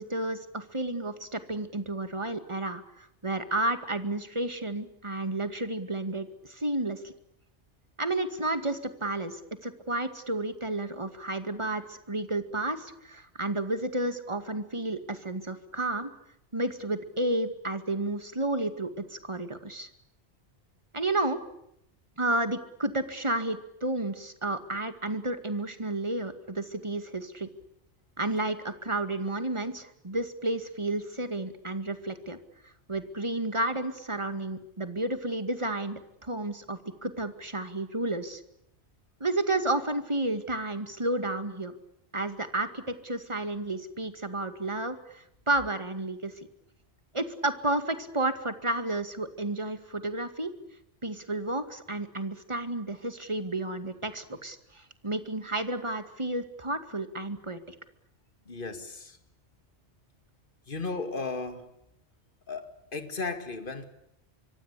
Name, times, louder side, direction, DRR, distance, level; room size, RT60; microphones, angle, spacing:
voice 1, 0.0-7.1 8.0-16.1 16.5-19.9 20.9-21.4 22.2-27.5 28.2-32.4 32.9-38.4 39.2-41.7 42.1-46.3 47.1-50.5 51.0-57.6, right 2 dB, 25° right, 9 dB, 2.2 m, -31 dB
voice 2, 58.5-59.2 60.7-61.7 62.5-63.8, left 3 dB, 50° left, 8 dB, 2.5 m, -35 dB
25.0 x 25.0 x 8.4 m, 0.76 s
omnidirectional pair, 1.1 m